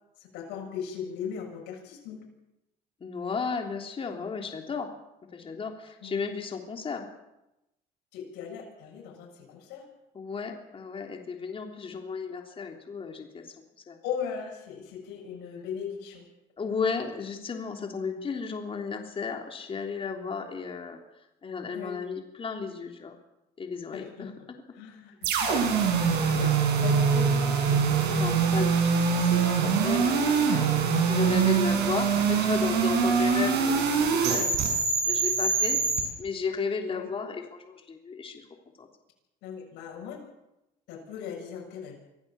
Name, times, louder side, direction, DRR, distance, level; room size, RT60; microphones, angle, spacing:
voice 1, 0.3-2.2 6.0-6.2 8.1-9.8 14.0-16.2 21.7-22.0 23.9-24.3 24.7-25.1 25.4-25.7 26.0-26.5 26.8-27.8 29.8-29.9 31.4-31.7 36.9-37.1 39.4-40.2 40.9-42.0, left 7 dB, 90° left, -1 dB, 7.1 m, -38 dB
voice 2, 3.0-4.9 5.3-7.1 10.2-13.5 13.9-14.0 16.6-21.0 21.4-23.2 23.6-24.6 26.2-26.4 28.1-34.6 35.1-35.8 36.2-38.4 38.8-38.9 40.0-40.2, left 5 dB, 35° left, 3 dB, 3.3 m, -34 dB
sound 1, 25.2-36.0, right 5 dB, 85° right, 6.1 m, -24 dB
25.5 x 16.0 x 7.1 m, 0.92 s
cardioid pair, 110°, 17 cm